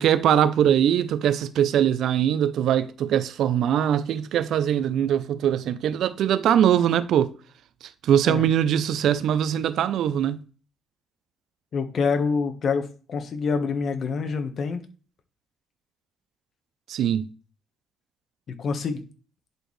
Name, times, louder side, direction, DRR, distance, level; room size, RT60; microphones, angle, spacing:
voice 1, 0.0-7.3 8.0-10.4 16.9-17.3, right 10 dB, 75° right, 0.6 m, -22 dB
voice 2, 11.7-14.8 18.5-19.0, left 5 dB, 55° left, 1.3 m, -26 dB
10.5 x 4.3 x 3.2 m
cardioid pair, 90°, 0 cm